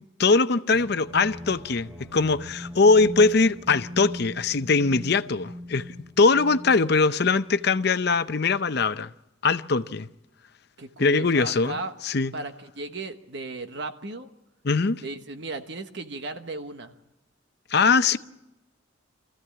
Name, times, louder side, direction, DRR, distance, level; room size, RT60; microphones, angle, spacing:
voice 1, 0.2-5.9 6.2-9.1 9.4-10.1 11.0-11.7 12.0-12.3 14.6-15.0 17.7-18.2, left 4 dB, 55° left, 0.7 m, -21 dB
sound 1, 0.7-8.4, left 1 dB, ahead, 1.2 m, -41 dB
voice 2, 10.8-11.9 12.3-14.3 15.0-16.9, right 2 dB, 60° right, 1.4 m, -36 dB
24.5 x 15.0 x 8.7 m
head